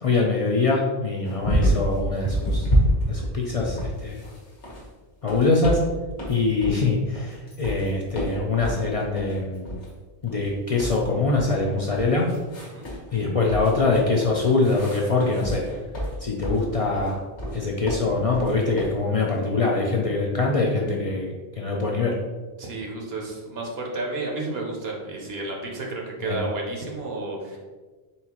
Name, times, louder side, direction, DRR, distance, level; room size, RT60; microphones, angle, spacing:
voice 1, 0.0-2.7 3.1-4.2 5.2-5.8 6.3-9.7 10.2-12.3 13.1-15.6 16.2-17.2 17.5-22.1 26.2-26.4, left 3 dB, 50° left, -2 dB, 0.4 m, -23 dB
sound 1, 1.3-2.0 2.2-4.9 5.2-5.9 6.2-6.8 7.2-8.8 9.2-9.4 9.7-9.9 10.3-11.6 11.9-13.2 13.5-16.7 16.9-17.6 17.9-19.0, equal, 85° left, 1.5 m, -28 dB
voice 2, 22.6-27.6, right 2 dB, 65° right, 0 dB, 1.0 m, -31 dB
4.3 x 3.6 x 2.9 m, 1.3 s
omnidirectional pair, 1.1 m